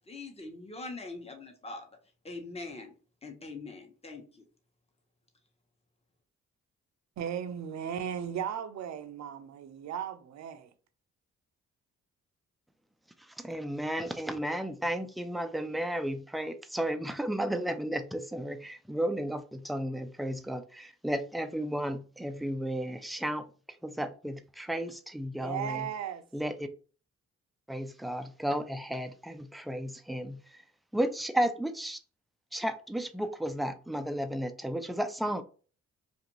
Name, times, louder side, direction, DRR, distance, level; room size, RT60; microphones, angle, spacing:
voice 1, 0.1-1.9 2.2-2.9 3.2-4.5, left 3 dB, 20° left, 0.9 m, -42 dB
voice 2, 7.2-10.7 25.4-26.2, right 9 dB, 60° right, 0.5 m, -36 dB
voice 3, 13.4-23.4 23.8-25.9 26.3-26.7 27.7-30.4 30.9-32.0 32.5-35.4, right 1 dB, ahead, 0.3 m, -33 dB
2.5 x 2.5 x 3.0 m
supercardioid pair, 60°, 31 cm